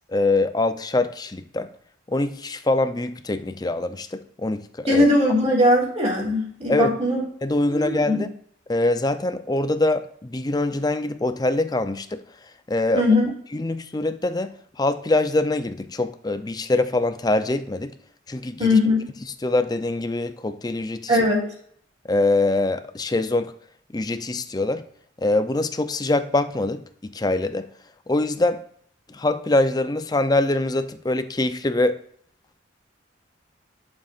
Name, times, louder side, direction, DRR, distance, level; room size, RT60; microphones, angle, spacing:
voice 1, 0.1-1.7 2.1-5.1 6.7-6.9 7.4-8.3 8.7-12.2 12.7-13.0 13.5-18.0 18.3-18.8 19.4-21.2 22.1-23.5 23.9-24.8 25.2-27.7 28.1-28.6 29.1-32.0, left 2 dB, 20° left, 0.5 m, -24 dB
voice 2, 4.8-7.2 7.7-8.2 12.9-13.3 18.6-19.1 21.1-21.4, left 1 dB, 35° right, 3.0 m, -20 dB
11.0 x 7.1 x 2.5 m
head